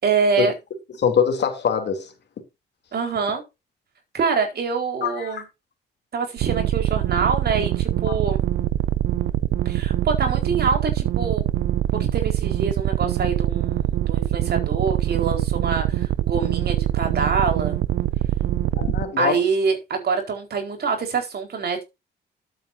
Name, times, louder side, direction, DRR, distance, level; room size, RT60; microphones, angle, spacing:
voice 1, 0.0-0.5 2.9-3.4 4.1-5.4 6.1-8.4 9.6-11.4 12.1-17.8 19.2-21.8, right 5 dB, 55° right, 4.4 m, -25 dB
voice 2, 1.0-2.1 5.0-5.4 8.1-8.2 18.7-19.4, left 7 dB, 60° left, 3.1 m, -23 dB
sound 1, 6.4-19.0, right 13 dB, 80° right, 0.7 m, -23 dB
12.0 x 9.0 x 2.7 m
cardioid pair, 90°, 20 cm